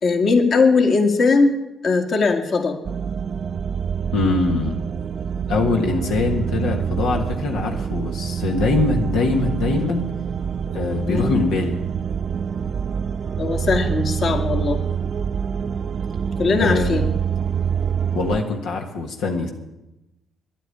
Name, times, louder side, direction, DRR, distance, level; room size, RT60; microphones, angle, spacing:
voice 1, 0.0-2.8 11.0-11.4 13.4-14.8 16.4-17.1, left 4 dB, 55° left, 5 dB, 1.9 m, -19 dB
sound 1, 2.8-18.4, right 7 dB, 50° right, 0.4 m, -26 dB
voice 2, 4.1-4.8 5.5-10.0 10.7-11.8 16.6-17.0 18.1-19.5, left 3 dB, 90° left, 2 dB, 1.6 m, -23 dB
11.0 x 9.0 x 9.8 m, 0.95 s
cardioid pair, 90°, 0 cm